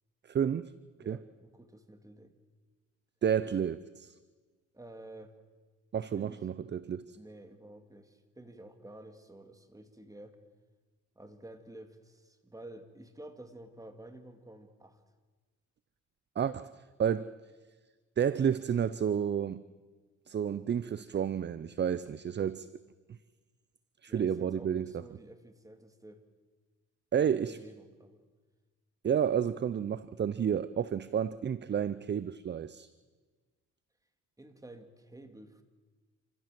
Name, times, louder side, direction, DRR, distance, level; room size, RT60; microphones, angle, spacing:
voice 1, 0.3-0.7 1.1-1.2 3.2-4.1 5.9-7.2 16.4-16.7 17.0-17.3 18.2-19.6 20.3-22.7 24.0-24.9 27.1-27.6 29.0-32.9, right 8 dB, 35° right, 0.6 m, -30 dB
voice 2, 1.0-2.4 4.7-5.3 6.1-6.4 7.2-10.4 11.2-15.0 24.1-26.2 27.2-28.3 34.4-35.6, right 1 dB, 10° right, 2.3 m, -51 dB
27.5 x 15.5 x 7.6 m
cardioid pair, 90°, 30 cm